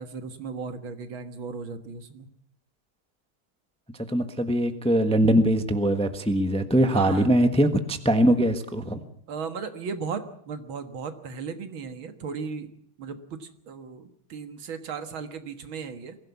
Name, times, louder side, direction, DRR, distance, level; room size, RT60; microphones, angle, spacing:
voice 1, 0.0-2.3 6.9-7.6 9.3-12.7 13.0-16.2, right 5 dB, 75° right, 9 dB, 2.3 m, -36 dB
voice 2, 4.0-9.0, right 1 dB, 5° left, 8 dB, 1.0 m, -22 dB
22.5 x 16.0 x 8.4 m, 0.66 s
omnidirectional pair, 2.3 m